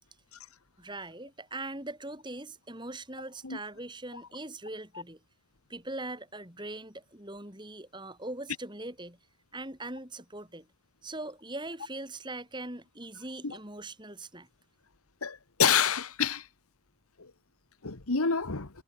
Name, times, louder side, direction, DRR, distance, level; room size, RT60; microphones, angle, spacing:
voice 1, 0.8-5.2 5.7-9.2 9.5-10.7 11.0-14.5, right 2 dB, 20° right, 6.1 m, -41 dB
voice 2, 15.2-16.4 17.8-18.7, left 6 dB, 90° left, 1.6 m, -27 dB
head